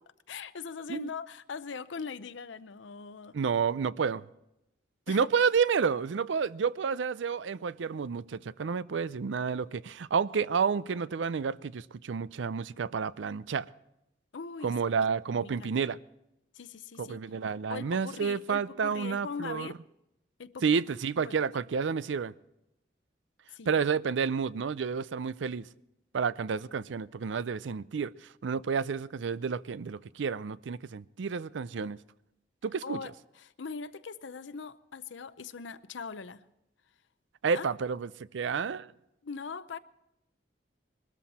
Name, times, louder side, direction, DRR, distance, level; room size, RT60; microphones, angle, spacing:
voice 1, 0.3-3.4 5.1-5.3 14.3-14.7 15.3-15.7 16.5-17.2 17.7-19.7 20.4-20.8 21.1-21.4 23.5-23.7 32.8-36.4 37.5-37.7 39.2-39.8, left 5 dB, 85° left, 0.6 m, -41 dB
voice 2, 3.3-4.2 5.1-13.7 14.6-16.0 17.0-19.7 20.6-22.3 23.7-25.7 26.1-28.1 28.4-32.0 32.6-33.0 37.4-38.9, right 6 dB, 85° right, 0.5 m, -30 dB
21.5 x 13.5 x 4.2 m
head